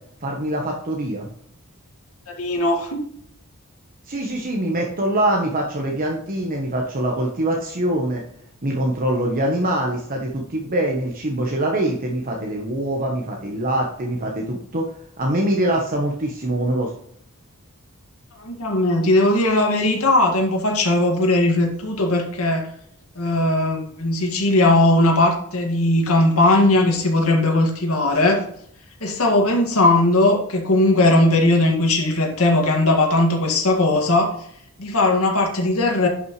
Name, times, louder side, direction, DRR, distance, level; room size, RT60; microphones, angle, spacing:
voice 1, 0.2-1.3 4.1-8.2 8.6-14.9 15.2-16.9, right 1 dB, 40° right, 0 dB, 1.1 m, -23 dB
voice 2, 2.3-3.0 18.4-22.7 23.2-28.4 29.0-34.3 34.8-36.1, left 2 dB, 75° left, 1 dB, 2.1 m, -18 dB
11.0 x 5.9 x 3.2 m, 0.68 s
head